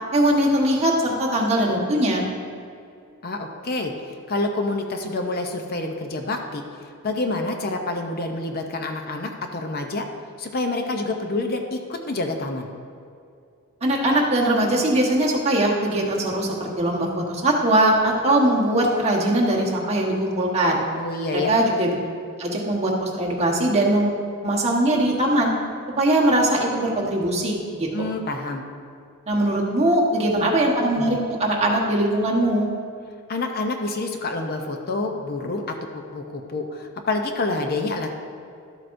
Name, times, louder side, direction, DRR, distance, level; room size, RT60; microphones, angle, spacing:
voice 1, 0.1-2.2 13.8-20.8 21.3-22.0 22.4-25.5 26.0-28.1 29.3-32.7, right 1 dB, 30° right, -3 dB, 1.2 m, -21 dB
voice 2, 3.2-6.6 7.0-10.1 10.4-12.7 21.0-21.5 27.9-28.6 33.3-35.6 35.9-38.1, left 2 dB, 45° left, 4 dB, 0.6 m, -27 dB
12.0 x 7.7 x 2.6 m, 2.5 s
head